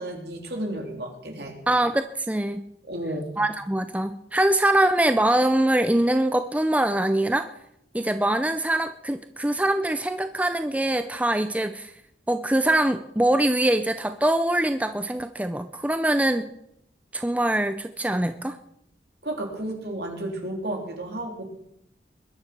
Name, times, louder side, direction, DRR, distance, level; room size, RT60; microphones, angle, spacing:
voice 1, 0.0-1.5 2.9-3.3 19.2-21.4, right 1 dB, 70° right, 2 dB, 3.6 m, -32 dB
voice 2, 1.7-2.7 3.4-7.5 7.9-11.9 12.3-16.5 17.1-18.6, right 1 dB, 10° right, 9 dB, 0.5 m, -23 dB
21.0 x 10.5 x 6.1 m, 0.76 s
head